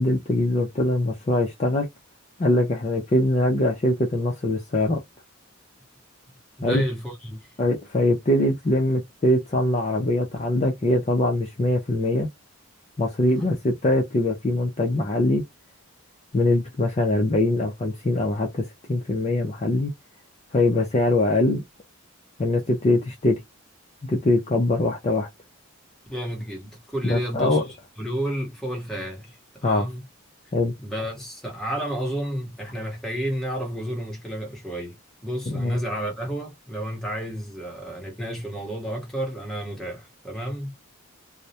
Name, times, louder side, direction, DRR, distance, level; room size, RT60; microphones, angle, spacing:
voice 1, 0.0-1.9 2.4-5.0 6.6-6.8 7.6-12.3 13.0-15.4 16.3-19.9 20.5-21.6 22.4-23.4 24.1-25.3 27.0-27.6 29.6-29.9 30.5-30.7 35.5-35.8, left 1 dB, 30° left, 0.4 m, -22 dB
voice 2, 6.6-7.4 26.1-27.6 28.0-30.0 30.8-35.0 35.2-40.7, equal, ahead, 0.8 m, -31 dB
2.2 x 2.0 x 2.7 m
head